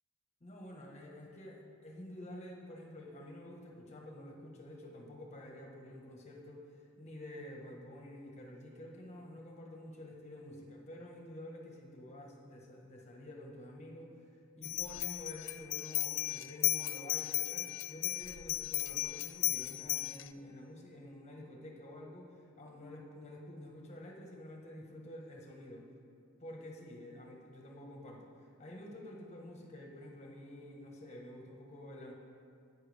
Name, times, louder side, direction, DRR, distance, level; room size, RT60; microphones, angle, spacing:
voice 1, 0.4-14.1 14.5-25.9 26.4-32.1, left 1 dB, 30° left, -1 dB, 1.4 m, -49 dB
sound 1, 14.6-20.3, left 18 dB, 55° left, 0.3 m, -35 dB
11.5 x 8.9 x 3.5 m, 2.4 s
head